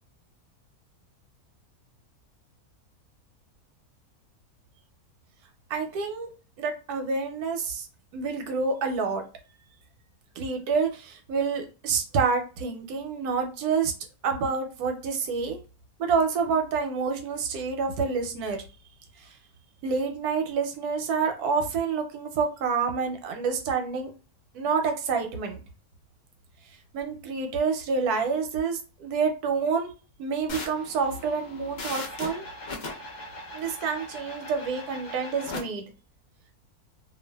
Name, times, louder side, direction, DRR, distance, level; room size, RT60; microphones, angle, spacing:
voice 1, 5.7-6.3 6.6-7.9 8.1-9.2 10.4-13.9 14.2-15.6 16.0-18.6 19.8-24.1 24.5-25.6 26.9-29.9 30.2-32.4 33.5-35.9, right 5 dB, 90° right, 5 dB, 1.1 m, -28 dB
sound 1, 30.5-35.6, left 2 dB, 55° left, 0.5 m, -39 dB
2.5 x 2.3 x 2.2 m, 0.33 s
omnidirectional pair, 1.6 m